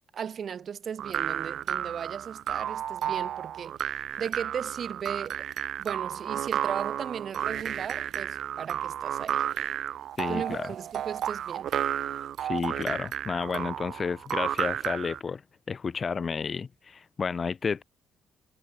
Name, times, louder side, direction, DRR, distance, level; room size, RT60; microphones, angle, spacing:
voice 1, 0.1-3.7 4.2-5.5 5.8-9.5 10.3-11.7, right 7 dB, 55° right, 5.1 m, -36 dB
sound 1, 1.0-15.2, right 10 dB, 70° right, 3.6 m, -32 dB
voice 2, 10.2-10.7 12.4-15.4 15.7-17.8, left 5 dB, 40° left, 2.3 m, -31 dB
cardioid pair, 90°, 0 cm